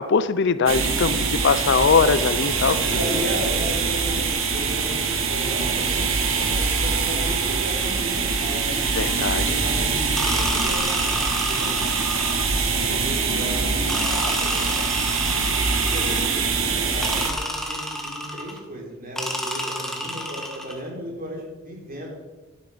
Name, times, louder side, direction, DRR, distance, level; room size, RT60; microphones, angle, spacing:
voice 1, 0.0-2.8 9.0-9.6, left 5 dB, 60° left, 15 dB, 0.5 m, -21 dB
sound 1, 0.7-17.3, right 4 dB, 70° right, 1.7 m, -24 dB
voice 2, 2.7-6.1 6.3-8.8 9.2-11.7 12.7-14.8 15.2-15.4 15.9-16.4 16.7-22.1, equal, 45° right, -2 dB, 4.2 m, -35 dB
sound 2, 10.2-12.7 13.9-16.5 17.0-18.6 19.2-20.8, equal, ahead, 1.7 m, -29 dB
11.5 x 11.0 x 5.1 m, 1.2 s
head